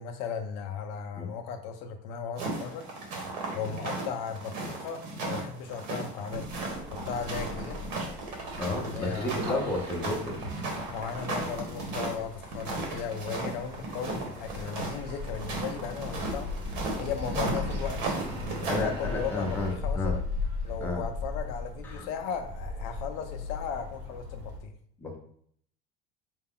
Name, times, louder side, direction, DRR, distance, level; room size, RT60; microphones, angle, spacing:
voice 1, 0.0-2.9 3.5-6.4 7.0-7.8 8.8-9.6 10.9-16.5 17.0-20.2 20.6-24.7, left 6 dB, 60° left, 6 dB, 0.5 m, -36 dB
sound 1, 2.4-18.8, right 2 dB, 75° right, 1.3 m, -35 dB
sound 2, 6.3-24.6, left 3 dB, 30° right, 0.9 m, -39 dB
Engine, 8.4-19.9, right 3 dB, 60° right, 0.9 m, -47 dB
voice 2, 8.6-10.4 18.7-20.1 20.8-21.0 21.8-22.1 25.0-25.2, left 2 dB, 10° left, -1 dB, 0.6 m, -32 dB
4.7 x 2.2 x 3.6 m, 0.63 s
cardioid pair, 175°, 21 cm